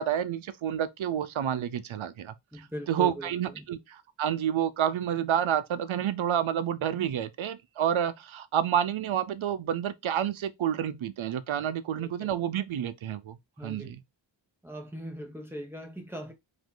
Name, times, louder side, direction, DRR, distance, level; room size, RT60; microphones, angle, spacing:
voice 1, 0.0-14.0, right 9 dB, 85° right, 0.7 m, -29 dB
voice 2, 2.5-3.6 12.0-12.3 13.6-14.0 14.6-16.3, equal, 5° right, 1.1 m, -40 dB
5.0 x 2.8 x 3.8 m
wide cardioid pair, 120°, 46 cm